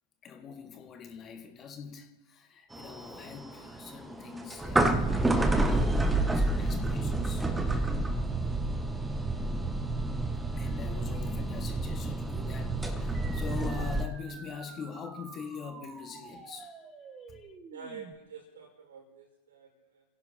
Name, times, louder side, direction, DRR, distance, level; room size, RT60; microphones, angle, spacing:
voice 1, 0.2-5.3 6.3-7.5 10.1-17.6, left 6 dB, 25° left, 1.7 m, -44 dB
sound 1, 2.7-14.1, right 2 dB, 10° right, 1.3 m, -29 dB
sound 2, 13.1-18.1, right 5 dB, 25° right, 1.6 m, -49 dB
voice 2, 17.7-20.0, right 5 dB, 65° right, 4.9 m, -47 dB
28.5 x 16.5 x 2.9 m
figure-of-eight pair, 90°, 0 cm